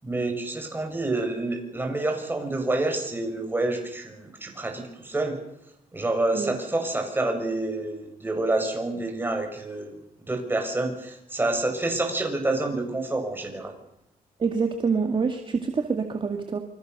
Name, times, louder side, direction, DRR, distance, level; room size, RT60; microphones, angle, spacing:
voice 1, 0.0-5.4 5.9-9.9 10.3-13.7, right 2 dB, 15° right, 4 dB, 6.7 m, -28 dB
voice 2, 14.4-16.6, right 5 dB, 35° right, 5 dB, 2.3 m, -26 dB
28.0 x 26.0 x 6.9 m, 0.82 s
wide cardioid pair, 140°, 15 cm